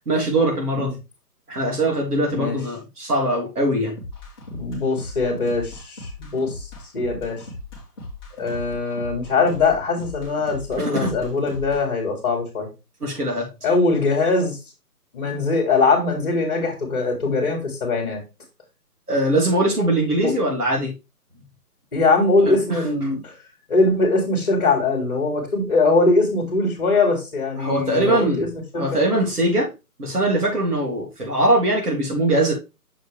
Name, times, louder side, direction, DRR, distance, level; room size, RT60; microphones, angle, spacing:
voice 1, 0.1-1.0 1.5-3.9 10.8-11.2 13.0-13.5 19.1-20.9 22.5-22.8 27.6-28.5 28.7-29.7 30.0-32.5, right 1 dB, 70° right, -2 dB, 3.6 m, -21 dB
sound 1, 4.0-11.8, left 2 dB, 15° left, 1.4 m, -38 dB
voice 2, 4.6-7.4 8.3-12.7 13.6-14.6 15.1-18.2 20.2-20.3 21.9-23.3 23.7-28.5 28.7-29.0, left 3 dB, 35° left, -1 dB, 1.9 m, -21 dB
6.3 x 5.2 x 3.4 m, 0.26 s
figure-of-eight pair, 155°, 47 cm